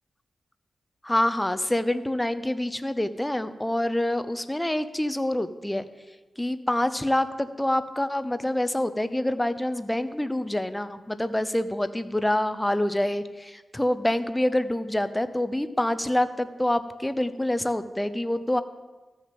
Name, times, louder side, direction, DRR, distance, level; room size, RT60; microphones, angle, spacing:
voice 1, 1.0-5.8 6.4-18.6, left 1 dB, 10° left, 12 dB, 0.6 m, -26 dB
13.5 x 6.4 x 5.2 m, 1.3 s
cardioid pair, 65°, 0 cm